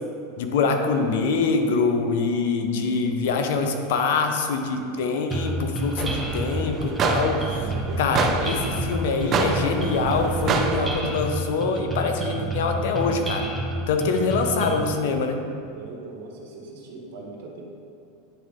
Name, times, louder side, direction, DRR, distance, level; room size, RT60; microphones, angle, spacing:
voice 1, 0.4-7.7 8.0-13.5 13.9-15.4, left 4 dB, 75° left, 5 dB, 0.7 m, -24 dB
sound 1, 5.3-14.9, right 1 dB, 5° right, 1.1 m, -30 dB
sound 2, 6.0-11.1, right 4 dB, 35° right, 0.5 m, -27 dB
voice 2, 7.7-8.1 15.7-17.6, right 3 dB, 70° right, -2 dB, 1.3 m, -40 dB
9.3 x 3.6 x 3.7 m, 2.7 s
supercardioid pair, 115°, 0 cm